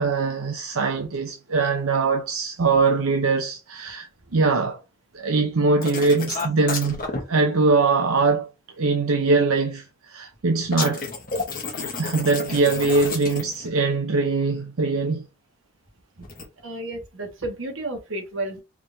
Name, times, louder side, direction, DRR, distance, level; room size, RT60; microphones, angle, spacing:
voice 1, 0.0-4.8 5.1-7.0 7.3-8.5 8.8-11.1 12.0-15.3, right 3 dB, 75° right, 0.7 m, -22 dB
sound 1, 5.8-7.2 10.7-13.7 16.2-16.5, left 4 dB, 40° left, 1.2 m, -30 dB
voice 2, 11.7-12.0 16.2-16.3 16.6-18.6, right 2 dB, 60° right, 1.5 m, -32 dB
4.9 x 3.5 x 2.7 m
head